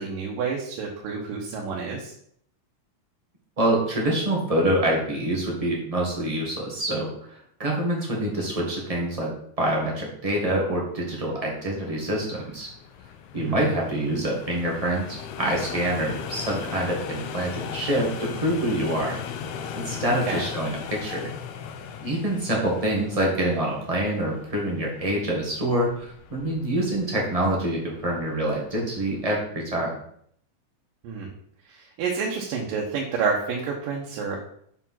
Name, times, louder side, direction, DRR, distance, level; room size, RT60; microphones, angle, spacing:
voice 1, 0.0-2.1 13.3-13.5 20.3-20.4 31.0-31.3 31.7-34.4, right 5 dB, 85° right, -1 dB, 2.7 m, -29 dB
voice 2, 3.6-9.3 9.6-12.7 13.3-19.2 19.7-21.3 22.0-29.9, right 1 dB, 15° right, -2 dB, 1.2 m, -26 dB
sound 1, 11.1-29.4, left 7 dB, 75° left, 1.9 m, -39 dB
6.9 x 4.6 x 5.7 m, 0.66 s
omnidirectional pair, 3.8 m